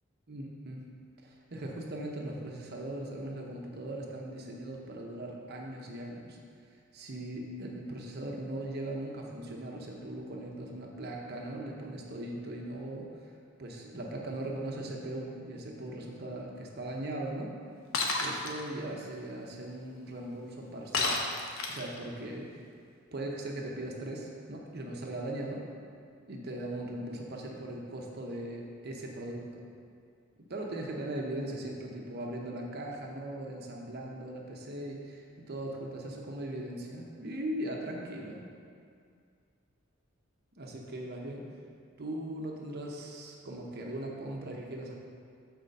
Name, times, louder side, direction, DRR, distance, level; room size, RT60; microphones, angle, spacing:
voice 1, 0.3-0.8 1.2-6.4 6.9-13.3 13.6-17.5 18.2-21.2 21.7-22.5 23.1-25.6 26.3-29.6 30.5-38.4 40.6-41.5 42.0-44.9, right 1 dB, 50° right, 0 dB, 0.8 m, -39 dB
Shatter, 17.9-18.5 20.9-22.0, left 3 dB, 90° left, 0.8 m, -30 dB
6.6 x 4.4 x 6.4 m, 2.3 s
head